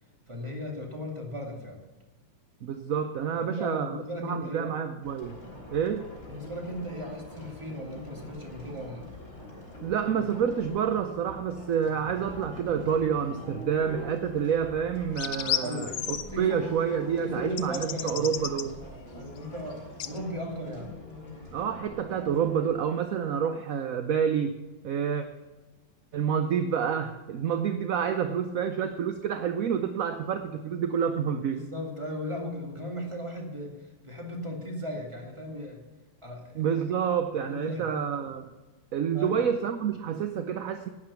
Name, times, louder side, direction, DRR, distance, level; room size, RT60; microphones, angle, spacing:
voice 1, 0.3-1.8 3.3-4.7 6.3-9.1 15.6-16.7 17.2-18.3 19.1-20.9 31.5-35.9 36.2-36.8 37.5-38.0 39.1-39.4, equal, 15° right, 0 dB, 2.4 m, -37 dB
voice 2, 2.6-5.4 5.7-6.1 9.8-18.8 21.5-24.6 24.8-25.3 26.1-31.6 36.5-38.5 38.9-40.9, right 7 dB, 60° right, 8 dB, 0.9 m, -28 dB
sound 1, 5.0-22.7, left 1 dB, 35° left, 3.8 m, -44 dB
sound 2, 15.2-16.2 17.6-18.6 20.0-20.2, left 10 dB, 80° left, 1.5 m, -32 dB
11.5 x 9.7 x 6.9 m, 1.2 s
omnidirectional pair, 2.1 m